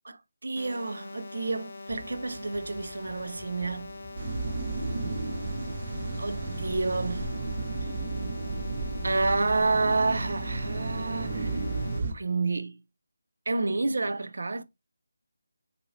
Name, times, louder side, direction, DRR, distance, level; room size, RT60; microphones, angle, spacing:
voice 1, 0.0-3.9 6.2-7.4 7.8-7.9 9.0-11.6 12.1-12.8 13.5-14.6, right 3 dB, 70° right, 0.4 m, -29 dB
sound 1, 0.6-12.0, left 2 dB, 50° left, 0.7 m, -43 dB
sound 2, 1.9-8.0, left 1 dB, ahead, 0.6 m, -49 dB
sound 3, 4.2-12.1, right 3 dB, 40° right, 0.7 m, -33 dB
2.7 x 2.6 x 3.1 m
figure-of-eight pair, 165°, 0 cm